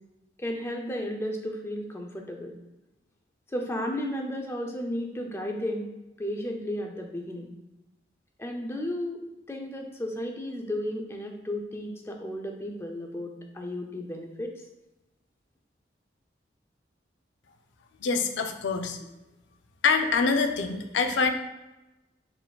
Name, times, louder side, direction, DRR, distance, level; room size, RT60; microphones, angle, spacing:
voice 1, 0.4-2.5 3.5-5.9 6.2-7.5 8.4-9.2 9.5-14.6, left 1 dB, 15° left, 2 dB, 0.4 m, -33 dB
voice 2, 18.0-19.0 19.8-21.3, left 4 dB, 80° left, 6 dB, 0.4 m, -25 dB
4.3 x 3.9 x 2.3 m, 1.0 s
head